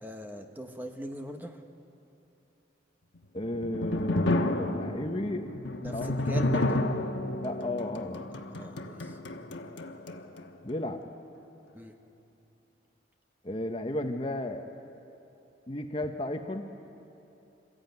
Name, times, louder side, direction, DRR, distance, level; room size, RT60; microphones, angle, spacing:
voice 1, 0.0-1.6 5.8-6.8 8.5-9.2 11.7-11.9, equal, 10° right, 4 dB, 1.1 m, -40 dB
sound 1, 3.2-10.5, left 2 dB, 80° left, 1.2 m, -31 dB
voice 2, 3.3-5.5 5.9-6.1 7.4-8.3 10.6-11.0 13.4-14.6 15.7-16.6, left 1 dB, 30° left, 6 dB, 0.9 m, -33 dB
26.5 x 14.0 x 9.3 m, 2.8 s
head